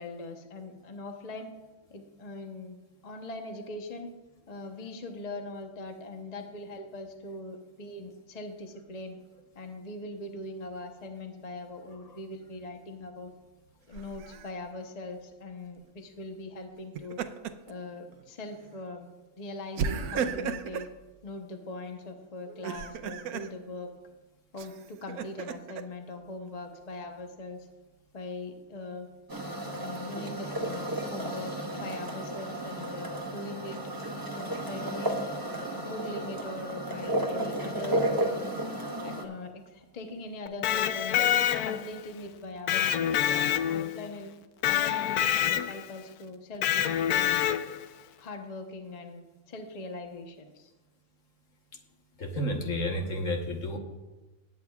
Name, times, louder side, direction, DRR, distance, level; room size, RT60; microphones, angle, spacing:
voice 1, 0.0-1.5 1.9-2.8 3.0-4.1 4.5-9.2 9.5-13.3 13.9-17.2 17.7-19.1 19.4-20.9 21.2-23.9 24.5-27.7 28.1-29.1 29.7-33.8 34.2-35.3 35.7-38.1 39.0-41.3 41.6-44.3 44.6-47.5 48.2-50.7, left 2 dB, 30° left, 4 dB, 0.8 m, -41 dB
Laughter, 13.9-14.5 16.8-17.7 18.1-18.3 19.8-20.9 22.5-23.5 24.6-25.8, right 6 dB, 80° right, 1.1 m, -34 dB
sound 1, 29.3-39.2, right 1 dB, 15° right, 1.0 m, -33 dB
Electric guitar, 40.5-42.0 42.7-44.1 44.6-45.9 46.6-47.8, left 11 dB, 80° left, 1.1 m, -26 dB
voice 2, 52.2-53.8, left 1 dB, 60° left, 2 dB, 1.5 m, -31 dB
18.5 x 8.7 x 2.4 m, 1.1 s
omnidirectional pair, 1.6 m